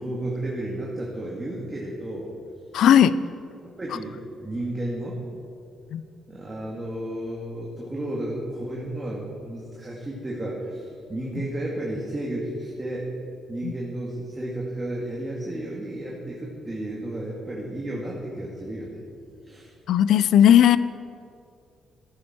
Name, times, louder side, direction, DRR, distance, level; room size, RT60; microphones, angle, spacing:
voice 1, 0.0-2.3 3.6-5.2 6.3-13.1 13.5-19.0 19.4-19.7, right 1 dB, 20° right, -4 dB, 2.1 m, -32 dB
voice 2, 2.7-3.1 5.9-6.0 13.6-13.7 19.9-20.8, left 10 dB, 75° left, 16 dB, 0.4 m, -16 dB
14.0 x 9.9 x 4.4 m, 2.4 s
cardioid pair, 90°, 0 cm